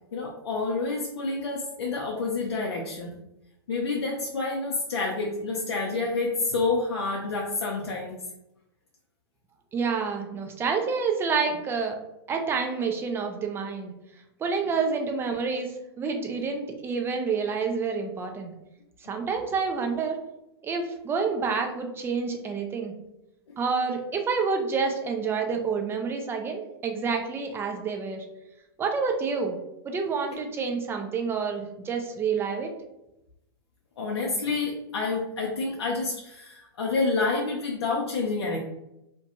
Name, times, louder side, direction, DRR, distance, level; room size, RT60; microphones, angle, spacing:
voice 1, 0.1-3.2 3.7-8.2 34.0-38.6, left 3 dB, 80° left, -2 dB, 0.5 m, -28 dB
voice 2, 9.7-11.9 12.3-13.9 14.4-18.5 19.0-20.2 20.6-22.9 23.6-28.2 28.8-29.6 29.8-32.7, right 5 dB, 15° right, 3 dB, 0.4 m, -28 dB
2.5 x 2.2 x 2.8 m, 0.88 s
hypercardioid pair, 115°, 14 cm